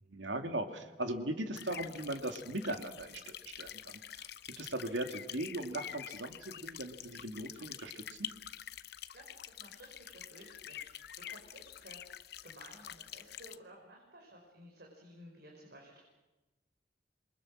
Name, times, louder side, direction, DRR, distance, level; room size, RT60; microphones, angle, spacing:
voice 1, 0.1-4.3 4.6-8.3, right 1 dB, 90° right, 5 dB, 2.5 m, -39 dB
sound 1, 1.5-13.6, left 11 dB, 60° left, 0.8 m, -47 dB
voice 2, 9.1-16.0, right 1 dB, 60° right, 0 dB, 5.3 m, -55 dB
27.5 x 23.5 x 6.4 m, 1.1 s
head